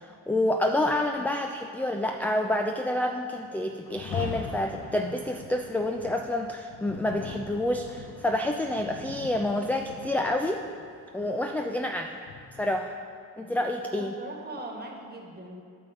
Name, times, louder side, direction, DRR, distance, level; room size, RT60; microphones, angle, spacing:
voice 1, 0.0-10.6 11.1-12.2 12.6-13.0 13.4-14.2, left 1 dB, 5° left, 4 dB, 0.4 m, -28 dB
Rain, 3.8-12.9, left 4 dB, 70° left, 0.9 m, -42 dB
voice 2, 13.8-15.6, right 2 dB, 25° right, 1 dB, 1.6 m, -40 dB
8.5 x 3.7 x 6.9 m, 2.3 s
hypercardioid pair, 50°, 40 cm